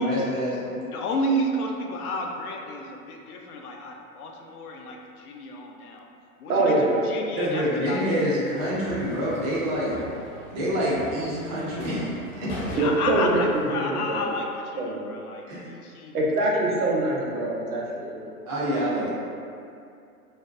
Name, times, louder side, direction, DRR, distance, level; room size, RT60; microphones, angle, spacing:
voice 1, 0.0-0.8 7.4-10.0 10.5-12.5 14.1-14.2 15.5-15.6 18.5-19.1, equal, 25° right, -7 dB, 0.4 m, -27 dB
voice 2, 0.9-6.0 6.4-6.7 7.1-8.0 12.7-15.4 15.8-16.2, left 1 dB, 80° left, 1 dB, 0.5 m, -31 dB
voice 3, 6.5-7.2 12.8-14.2 14.8-15.0 16.1-18.2, right 2 dB, 85° right, -3 dB, 0.7 m, -24 dB
sound 1, 8.5-13.7, equal, 35° left, 0.6 m, -39 dB
2.5 x 2.1 x 2.3 m, 2.5 s
hypercardioid pair, 130°, 44 cm